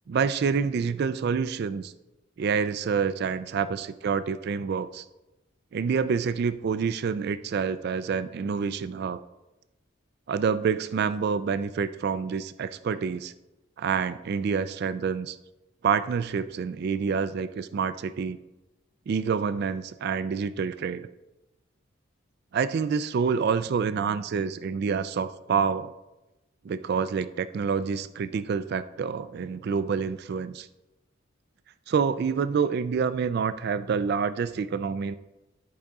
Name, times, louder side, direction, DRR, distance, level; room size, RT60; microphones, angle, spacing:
voice 1, 0.1-1.9 2.4-5.0 5.7-9.2 10.3-13.3 13.8-15.4 15.8-18.4 19.1-21.1 22.5-25.9 26.6-30.7 31.9-35.1, right 6 dB, 55° right, 14 dB, 0.3 m, -27 dB
13.0 x 5.0 x 3.6 m, 1.0 s
head